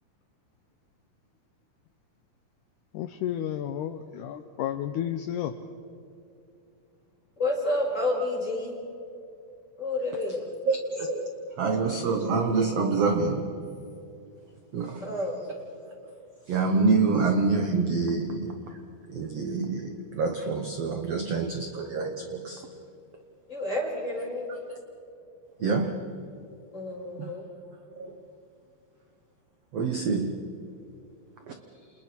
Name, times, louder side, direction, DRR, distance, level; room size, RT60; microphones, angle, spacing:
voice 1, 2.9-5.5, left 10 dB, 80° left, 9 dB, 1.9 m, -32 dB
voice 2, 7.4-8.8 9.8-10.5 15.0-15.5 23.5-24.5 26.7-27.5, left 1 dB, 20° left, -3 dB, 6.6 m, -29 dB
voice 3, 10.7-13.8 14.7-15.1 15.8-16.1 16.5-18.8 19.1-22.7 24.7-24.8 25.6-26.1 27.2-27.3 27.9-28.2 29.7-30.6 31.5-31.6, right 4 dB, 60° right, 5 dB, 1.7 m, -27 dB
29.5 x 28.5 x 4.6 m, 2.6 s
omnidirectional pair, 4.3 m